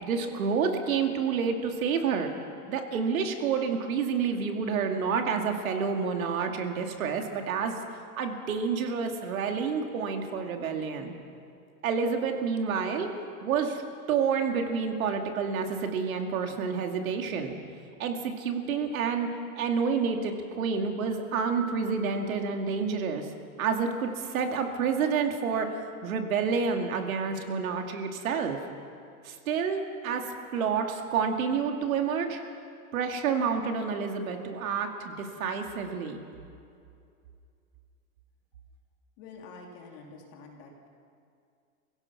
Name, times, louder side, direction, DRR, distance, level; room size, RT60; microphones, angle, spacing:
voice 1, 0.0-2.3 2.7-11.1 11.8-13.1 13.4-13.8 14.1-17.6 18.0-19.3 19.5-23.3 23.6-28.6 29.2-32.4 32.9-36.2, right 6 dB, 70° right, 4 dB, 2.4 m, -29 dB
voice 2, 39.2-40.9, left 3 dB, 35° left, 0 dB, 2.9 m, -47 dB
27.5 x 16.5 x 5.9 m, 2.4 s
supercardioid pair, 165°, 43 cm